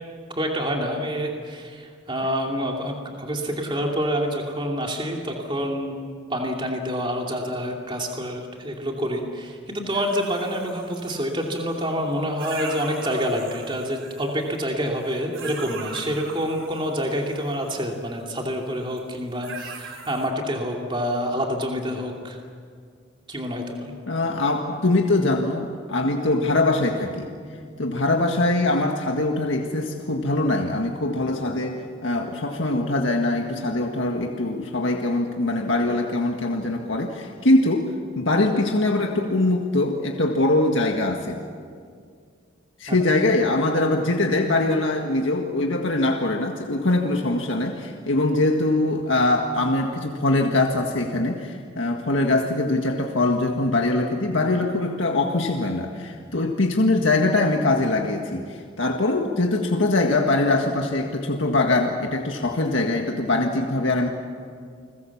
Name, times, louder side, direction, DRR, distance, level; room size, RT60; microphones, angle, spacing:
voice 1, 0.3-6.0 6.3-22.4 23.3-23.9 42.9-43.0, equal, 25° right, 1 dB, 2.8 m, -27 dB
sound 1, 9.9-11.9 12.4-14.6 15.0-17.8 19.0-19.2 19.4-20.3, right 4 dB, 70° right, 3.0 m, -40 dB
voice 2, 24.1-27.3 27.8-41.4 42.8-64.1, left 2 dB, 70° left, 2 dB, 1.8 m, -22 dB
30.0 x 21.5 x 7.3 m, 2.1 s
head